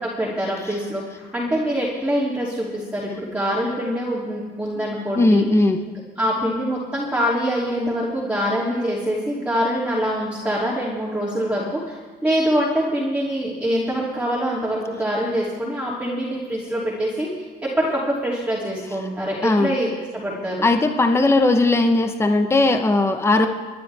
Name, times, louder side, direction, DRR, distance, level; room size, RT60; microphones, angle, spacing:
voice 1, 0.0-5.5 5.9-12.0 12.2-17.5 17.8-20.7, equal, 10° right, -6 dB, 2.7 m, -24 dB
voice 2, 5.1-5.8 19.4-19.7 20.6-23.5, left 2 dB, 15° left, 6 dB, 0.9 m, -18 dB
27.5 x 10.0 x 3.4 m, 1.4 s
cardioid pair, 110°, 17 cm